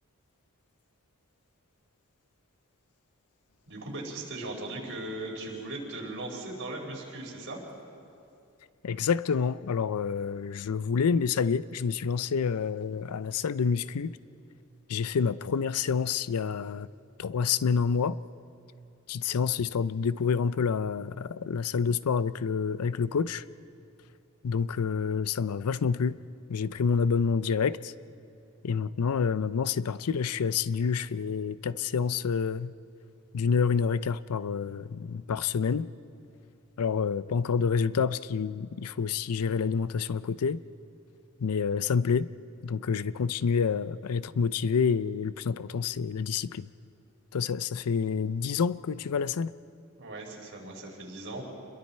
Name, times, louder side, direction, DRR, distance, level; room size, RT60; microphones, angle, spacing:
voice 1, 3.7-7.6 50.0-51.4, right 2 dB, 55° right, -1 dB, 4.6 m, -38 dB
voice 2, 8.8-14.2 14.9-16.9 17.2-18.2 19.1-23.4 24.4-26.2 26.5-27.9 28.6-32.7 33.3-35.9 36.8-40.6 41.4-42.3 42.6-46.7 47.3-49.5, left 6 dB, 80° left, 16 dB, 0.5 m, -28 dB
29.0 x 22.0 x 4.4 m, 2.6 s
head